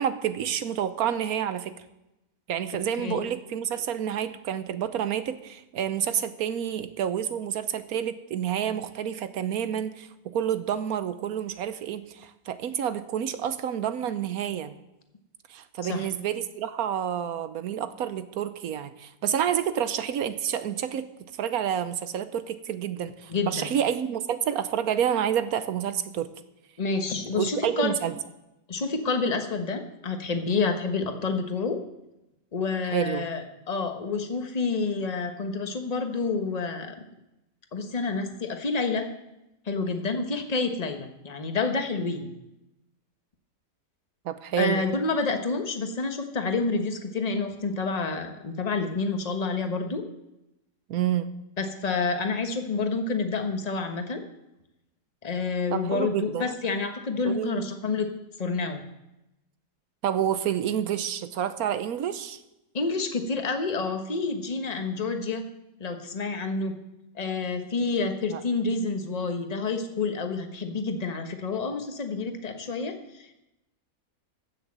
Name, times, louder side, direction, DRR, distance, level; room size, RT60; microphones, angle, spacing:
voice 1, 0.0-1.7 2.5-14.8 15.5-21.0 21.4-26.3 27.4-28.1 32.8-33.3 44.2-44.8 50.9-51.3 55.7-56.5 57.2-57.7 60.0-62.4 68.3-68.4, right 9 dB, 65° right, 12 dB, 1.2 m, -29 dB
voice 2, 23.3-23.7 26.8-28.0 28.7-31.8 32.5-36.9 37.7-39.1 39.6-42.3 44.6-50.0 51.6-54.2 55.2-58.1 58.4-58.8 62.7-65.4 65.8-66.7 67.1-73.3, left 4 dB, 25° left, 5 dB, 1.1 m, -28 dB
15.5 x 6.6 x 7.4 m, 0.91 s
omnidirectional pair, 1.8 m